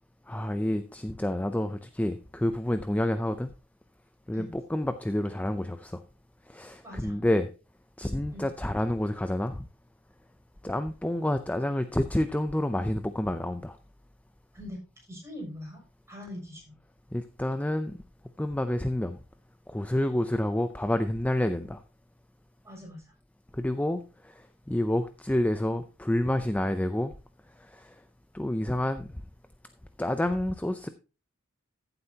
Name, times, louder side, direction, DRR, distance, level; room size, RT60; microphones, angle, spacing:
voice 1, 0.3-3.5 4.3-6.0 6.5-7.5 8.0-9.7 10.6-13.8 17.1-17.9 18.4-19.2 19.7-21.8 23.5-27.1 27.6-28.0 28.3-29.1 30.0-30.9, left 1 dB, 5° left, 0.5 m, -29 dB
voice 2, 6.8-7.1 8.3-8.5 14.5-14.8 15.1-15.8 16.1-16.8 22.6-23.1, left 1 dB, 15° right, 6.8 m, -42 dB
14.5 x 7.9 x 2.8 m
head